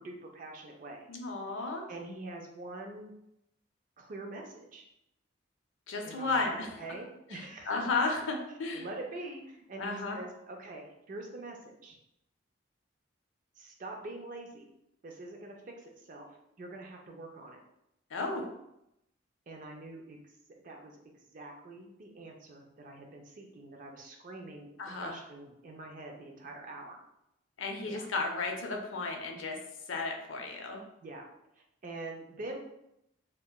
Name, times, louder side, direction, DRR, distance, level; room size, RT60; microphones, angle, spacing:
voice 1, 0.0-1.1 1.9-3.1 4.0-4.9 6.0-6.4 6.8-7.7 8.7-12.0 13.6-14.7 15.0-16.3 16.6-17.6 19.5-20.3 20.6-24.7 24.9-27.0 27.9-28.1 31.0-31.3 31.5-32.6, right 2 dB, 40° right, 2 dB, 0.4 m, -45 dB
voice 2, 1.1-1.8 5.9-6.8 7.3-8.8 9.8-10.2 18.1-18.5 24.8-25.2 27.6-29.6 29.9-30.8, left 3 dB, 80° left, 3 dB, 0.4 m, -33 dB
2.8 x 2.2 x 2.2 m, 0.82 s
head